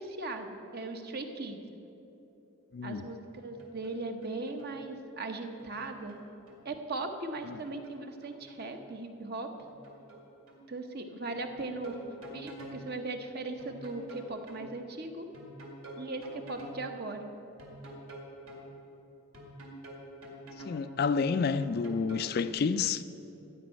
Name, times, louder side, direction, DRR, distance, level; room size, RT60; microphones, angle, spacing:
voice 1, 0.0-1.6 2.8-6.2 6.6-9.5 10.7-12.0 12.3-15.3 16.0-17.3, right 2 dB, 45° right, 0.9 m, -38 dB
voice 2, 2.7-3.1 7.4-7.6 20.6-23.0, left 5 dB, 45° left, 0.3 m, -29 dB
sound 1, 3.3-4.0 4.2-4.8 5.6-6.6 7.3-8.8 9.6-10.2 10.5-10.6 11.3-12.8 13.6-14.7 15.3-16.8 17.6-18.7 19.3-20.8 21.6-22.5, right 1 dB, 70° right, 2.3 m, -48 dB
14.5 x 5.4 x 8.9 m
head